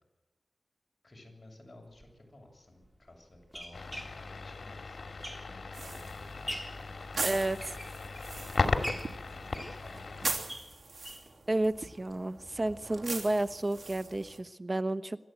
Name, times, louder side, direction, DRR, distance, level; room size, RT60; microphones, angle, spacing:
voice 1, 1.0-7.8 8.6-10.5, left 1 dB, 35° left, 1 dB, 7.9 m, -55 dB
sound 1, 1.9-2.0 2.8-5.8 6.2-6.9 7.4-8.4 8.8-11.3 11.7-11.8 12.1-12.2 12.5-12.6, equal, 10° right, 3.6 m, -43 dB
sound 2, 3.7-10.4, left 3 dB, 70° left, 2.3 m, -36 dB
sound 3, 5.7-14.4, right 3 dB, 70° right, 3.0 m, -41 dB
voice 2, 7.2-7.7 11.5-15.2, right 2 dB, 35° right, 12 dB, 1.0 m, -31 dB
27.0 x 13.0 x 9.3 m, 1.1 s
wide cardioid pair, 95°, 0 cm